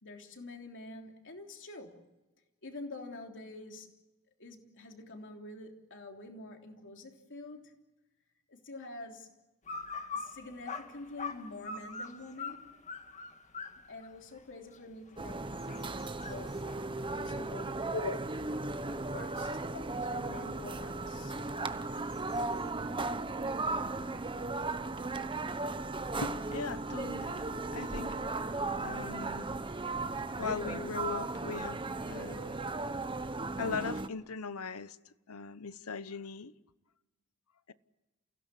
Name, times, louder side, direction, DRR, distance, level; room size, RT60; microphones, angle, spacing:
voice 1, 0.0-2.1 2.6-4.0 4.4-7.7 8.5-9.3 10.1-12.8 13.8-15.5 16.0-16.7 17.1-18.4 19.1-19.6 20.0-21.4, left 2 dB, 60° left, 3.3 m, -47 dB
sound 1, 9.7-19.2 19.7-22.7, left 4 dB, 35° left, 1.7 m, -45 dB
sound 2, 15.2-34.1, right 3 dB, 20° right, 0.9 m, -36 dB
voice 2, 26.2-29.5 30.4-32.5 33.6-35.0 35.3-36.5, left 5 dB, 75° left, 0.9 m, -39 dB
30.0 x 16.5 x 8.4 m
head